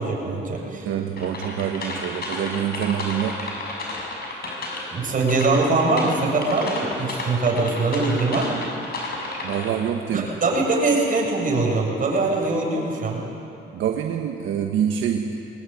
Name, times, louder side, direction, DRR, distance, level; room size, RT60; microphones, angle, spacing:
voice 1, 0.0-0.9 4.9-8.6 10.1-13.3, right 3 dB, 45° right, -2 dB, 7.5 m, -22 dB
voice 2, 0.8-3.5 9.4-10.3 13.7-15.3, right 9 dB, 80° right, 3 dB, 1.4 m, -26 dB
sound 1, 1.2-5.0 5.3-9.7, left 2 dB, 50° left, 6.7 m, -32 dB
23.0 x 19.5 x 9.5 m, 2.9 s
cardioid pair, 90°, 20 cm